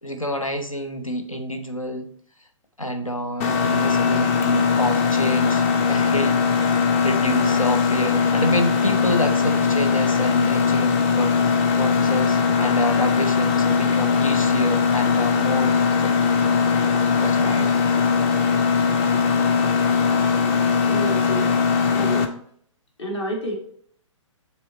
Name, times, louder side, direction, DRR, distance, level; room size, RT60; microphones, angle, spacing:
voice 1, 0.0-2.1 2.8-6.4 6.8-16.3 17.2-17.7, equal, 90° left, 7 dB, 0.8 m, -28 dB
Mechanisms, 3.4-22.3, left 5 dB, 25° left, 0.5 m, -20 dB
voice 2, 20.9-22.2 23.0-23.5, equal, 55° left, 0 dB, 2.0 m, -30 dB
7.4 x 3.2 x 4.2 m, 0.62 s
figure-of-eight pair, 120°, 17 cm